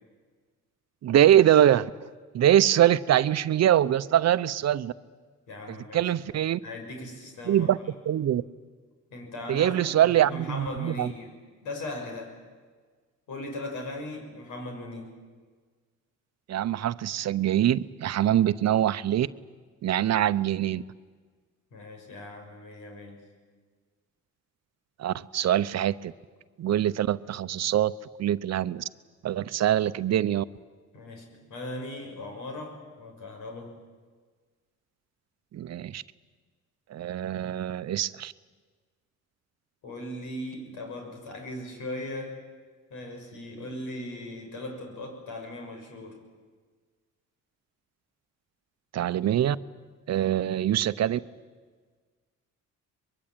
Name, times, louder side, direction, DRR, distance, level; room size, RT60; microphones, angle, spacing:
voice 1, 1.0-1.9 2.3-4.9 5.7-6.6 7.5-7.8 8.1-8.4 9.5-11.1 16.5-19.3 19.8-20.8 25.0-26.1 26.6-27.9 28.2-28.9 29.2-30.4 35.5-36.0 36.9-38.3 48.9-49.6 50.1-51.2, right 11 dB, 60° right, 14 dB, 0.8 m, -23 dB
voice 2, 5.5-7.7 9.1-12.4 13.3-15.2 21.7-23.2 30.9-33.8 39.8-42.4 42.9-46.2 50.1-50.4, left 1 dB, 85° left, 3 dB, 6.3 m, -39 dB
23.5 x 22.5 x 9.1 m, 1.5 s
cardioid pair, 90°, 30 cm